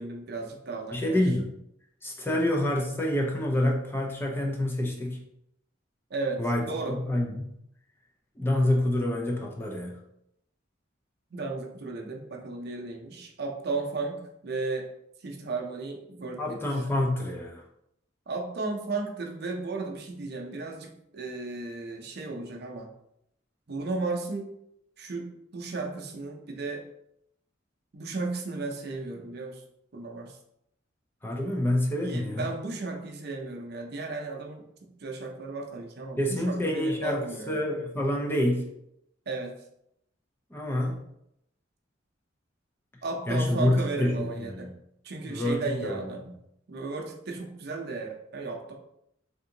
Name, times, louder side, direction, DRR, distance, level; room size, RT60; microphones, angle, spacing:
voice 1, 0.0-1.2 2.3-2.4 6.1-6.4 6.7-7.0 11.3-14.9 15.2-16.6 18.3-22.9 23.7-24.5 25.0-26.8 27.9-29.6 29.9-30.4 32.0-37.6 39.3-39.5 43.0-44.7 45.0-46.3 46.7-48.7, right 3 dB, 55° right, 2 dB, 0.6 m, -34 dB
voice 2, 0.9-1.5 2.0-5.2 6.4-7.5 8.4-10.0 16.4-17.6 31.2-32.5 36.2-37.2 37.5-38.7 40.5-41.0 43.3-44.7 45.3-46.3, left 1 dB, 10° left, -1 dB, 0.4 m, -27 dB
3.6 x 2.6 x 2.8 m, 0.78 s
head